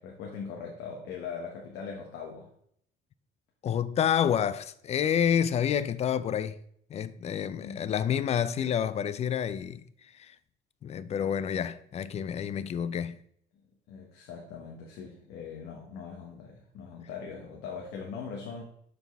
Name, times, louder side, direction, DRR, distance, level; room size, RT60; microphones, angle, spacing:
voice 1, 0.0-2.5 7.6-7.9 12.5-12.7 13.9-18.6, left 6 dB, 90° left, 1.1 m, -41 dB
voice 2, 3.6-6.6 6.9-10.4 10.8-13.2, left 8 dB, 40° left, 0.4 m, -29 dB
6.9 x 4.2 x 3.4 m
cardioid pair, 110°, 17 cm